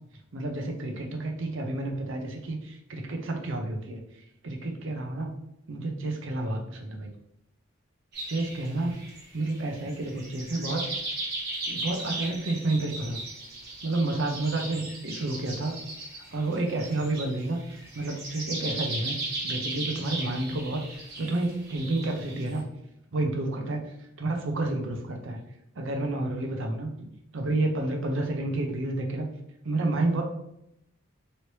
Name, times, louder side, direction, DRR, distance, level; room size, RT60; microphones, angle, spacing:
voice 1, 0.3-4.0 4.4-5.3 5.7-7.1 8.3-9.0 9.3-10.8 11.7-13.2 13.8-15.8 16.3-17.6 17.9-19.2 19.4-20.8 21.2-22.6 23.1-23.8 24.2-25.4 25.8-26.9 27.3-29.3 29.6-30.2, right 2 dB, 70° right, 2 dB, 0.6 m, -30 dB
sound 1, 8.1-22.6, right 2 dB, 55° right, 1.2 m, -37 dB
3.1 x 2.9 x 3.0 m, 0.80 s
head